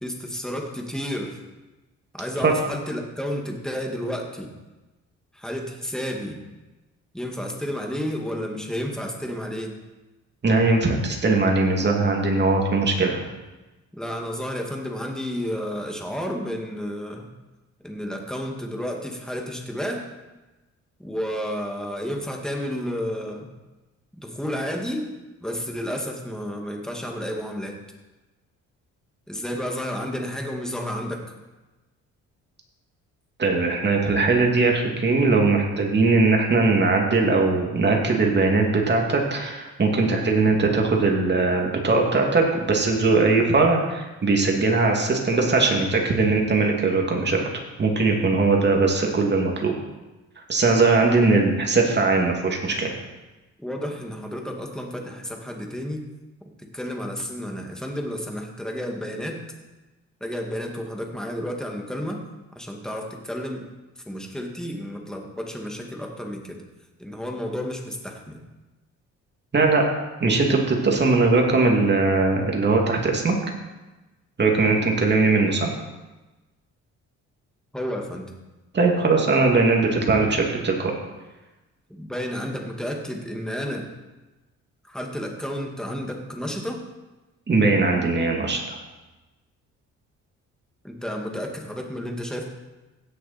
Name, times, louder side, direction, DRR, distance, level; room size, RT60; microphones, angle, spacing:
voice 1, 0.0-1.4 2.1-4.5 5.3-6.4 7.1-9.7 13.9-17.3 17.8-20.1 21.0-23.4 24.1-25.1 25.4-27.8 29.3-31.2 51.3-51.4 53.6-56.0 56.6-59.4 60.2-62.2 62.6-63.7 64.1-66.6 67.0-68.4 77.7-78.3 81.9-83.9 84.9-86.8 90.8-92.4, equal, ahead, 1 dB, 2.1 m, -31 dB
voice 2, 10.4-13.2 33.4-47.4 47.8-49.7 50.5-52.9 69.5-69.8 70.2-73.4 74.4-75.7 78.7-80.9 87.5-88.8, right 3 dB, 35° right, 1 dB, 2.5 m, -20 dB
16.5 x 6.7 x 4.4 m, 1.1 s
cardioid pair, 90°, 30 cm